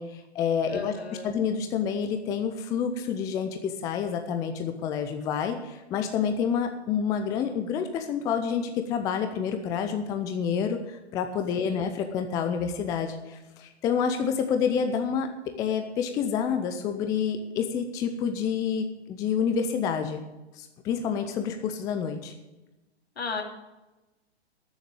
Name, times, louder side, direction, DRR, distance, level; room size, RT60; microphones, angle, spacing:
voice 1, 0.0-0.9 1.2-15.3 15.6-20.2 20.5-22.3, left 7 dB, 10° left, 6 dB, 0.5 m, -28 dB
voice 2, 0.7-1.3 11.5-11.8 23.2-23.4, left 4 dB, 65° left, 3 dB, 2.9 m, -35 dB
13.0 x 7.3 x 8.5 m, 1.0 s
figure-of-eight pair, 120°, 33 cm